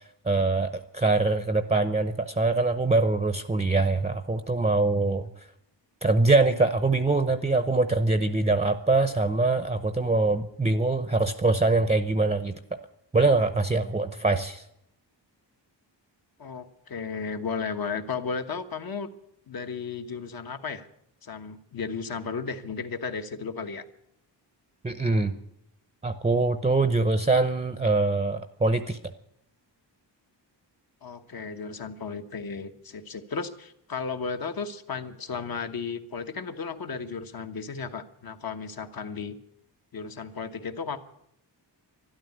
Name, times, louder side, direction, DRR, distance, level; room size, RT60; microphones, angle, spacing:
voice 1, 0.2-5.3 6.0-12.5 13.1-14.6 24.8-25.3 26.0-29.0, right 3 dB, 15° right, 10 dB, 0.7 m, -23 dB
voice 2, 16.4-19.1 19.5-20.9 21.2-23.8 31.0-39.4 39.9-41.0, left 5 dB, 55° left, 7 dB, 1.3 m, -34 dB
13.0 x 12.0 x 9.3 m, 0.78 s
wide cardioid pair, 135°, 43 cm